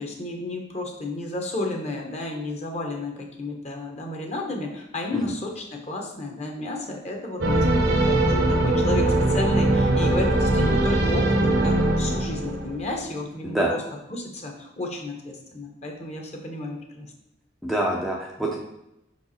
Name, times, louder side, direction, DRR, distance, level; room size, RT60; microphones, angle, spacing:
voice 1, 0.0-7.7 8.0-13.8 14.1-17.1 18.4-18.5, left 2 dB, 35° left, 1 dB, 1.2 m, -32 dB
sound 1, 7.4-12.9, right 1 dB, 70° right, 1.1 m, -21 dB
voice 2, 17.6-18.6, right 1 dB, ahead, -3 dB, 0.6 m, -25 dB
5.9 x 4.6 x 4.3 m, 0.86 s
head